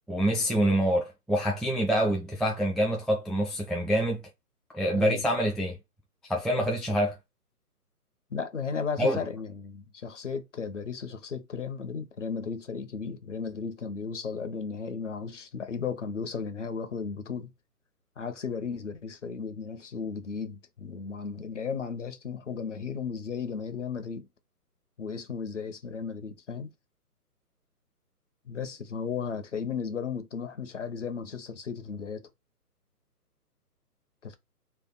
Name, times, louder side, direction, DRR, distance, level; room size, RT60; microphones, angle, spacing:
voice 1, 0.1-4.2 4.7-5.8 6.2-7.2 9.0-9.2, equal, ahead, 0.3 m, -26 dB
voice 2, 4.9-5.2 8.3-17.5 18.2-24.3 25.0-26.7 28.5-32.2 34.2-34.4, left 6 dB, 50° left, 1.0 m, -35 dB
3.4 x 3.3 x 4.0 m
figure-of-eight pair, 145°, 47 cm